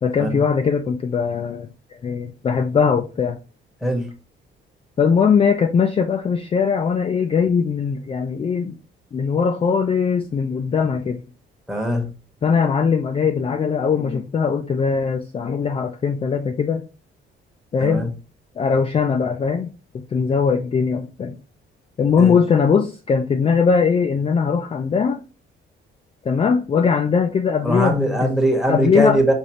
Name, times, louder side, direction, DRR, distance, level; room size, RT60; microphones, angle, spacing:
voice 1, 0.0-1.7 2.0-3.4 5.0-8.8 9.1-11.2 12.4-16.8 17.7-18.1 18.6-21.4 22.0-25.2 26.2-28.3 28.7-29.2, left 6 dB, 30° left, 0.3 m, -20 dB
voice 2, 3.8-4.1 11.7-12.1 17.8-18.1 22.2-22.4 27.6-29.3, equal, ahead, 1.1 m, -20 dB
4.9 x 2.6 x 3.0 m
cardioid pair, 90°, 20 cm